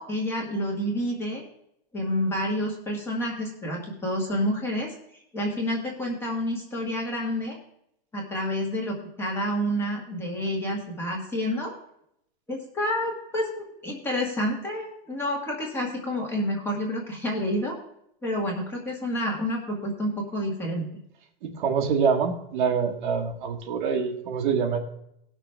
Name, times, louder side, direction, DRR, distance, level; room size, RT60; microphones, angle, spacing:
voice 1, 0.0-1.4 1.9-4.9 5.3-7.6 8.1-11.7 12.5-17.8 18.2-20.9, equal, 10° left, -1 dB, 1.7 m, -29 dB
voice 2, 21.4-24.8, right 6 dB, 55° right, 3 dB, 1.5 m, -25 dB
18.0 x 6.3 x 3.4 m, 0.75 s
supercardioid pair, 170°, 30 cm